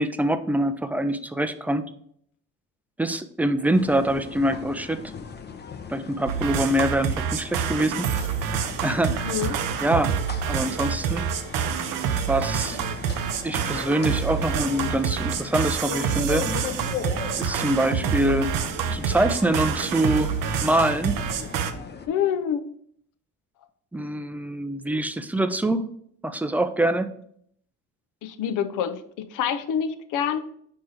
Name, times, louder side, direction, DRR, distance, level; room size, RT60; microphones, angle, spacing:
voice 1, 0.0-1.8 3.0-5.0 5.9-8.1 8.8-9.3 9.8-10.1 10.5-11.3 12.3-12.8 13.4-16.5 17.4-18.5 18.9-20.3 20.6-21.2 23.9-25.8 26.2-27.1, right 1 dB, 5° right, 10 dB, 0.4 m, -24 dB
sound 1, 3.7-22.1, left 5 dB, 35° left, 0.7 m, -38 dB
sound 2, 6.3-21.7, right 7 dB, 80° right, 0.6 m, -27 dB
voice 2, 9.1-9.6 22.1-22.7 28.2-30.4, left 8 dB, 75° left, 9 dB, 0.7 m, -27 dB
4.7 x 4.4 x 4.7 m, 0.66 s
cardioid pair, 90°, 32 cm